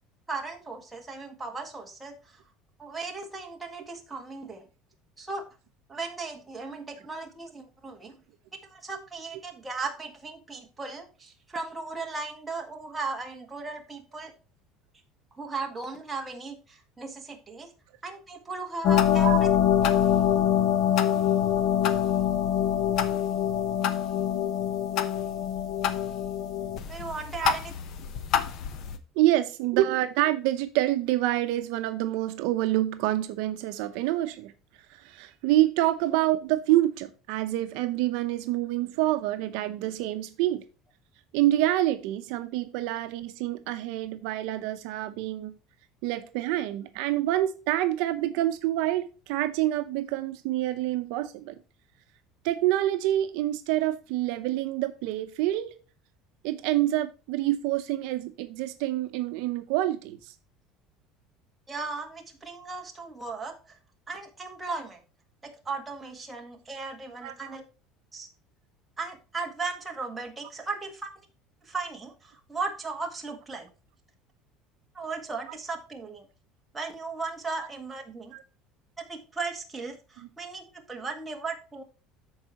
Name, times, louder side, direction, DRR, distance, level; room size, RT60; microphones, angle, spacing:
voice 1, 0.3-2.5 2.8-4.6 5.2-5.4 5.9-8.2 8.6-14.3 15.3-17.7 18.0-19.5 26.9-27.7 61.7-63.8 64.1-65.0 65.4-67.6 68.1-68.3 69.0-71.1 71.6-73.7 74.9-76.2 76.7-78.3 79.0-81.8, right 3 dB, 10° right, 1.6 m, -36 dB
sound 1, 18.8-29.0, left 10 dB, 45° left, 0.9 m, -25 dB
voice 2, 29.2-34.5 34.9-40.6 41.3-45.5 46.0-51.5 52.4-55.7 56.4-60.3 67.2-67.6 75.5-75.6 77.6-77.7 78.3-78.4 80.2-80.3, right 14 dB, 70° right, 0.7 m, -27 dB
13.5 x 4.7 x 2.9 m
cardioid pair, 160°, 0 cm